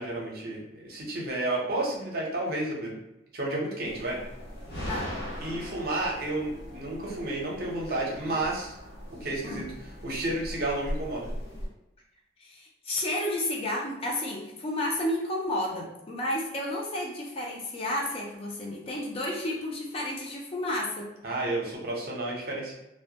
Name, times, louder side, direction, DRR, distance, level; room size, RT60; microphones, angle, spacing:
voice 1, 0.0-3.0 3.3-4.2 5.4-8.7 9.2-9.6 10.0-11.3 21.2-22.7, right 2 dB, 50° right, -3 dB, 0.6 m, -31 dB
sound 1, 3.9-11.7, equal, 55° left, 0.8 m, -39 dB
voice 2, 12.4-21.1, left 1 dB, 30° left, -1 dB, 0.4 m, -31 dB
2.1 x 2.1 x 2.7 m, 0.92 s
head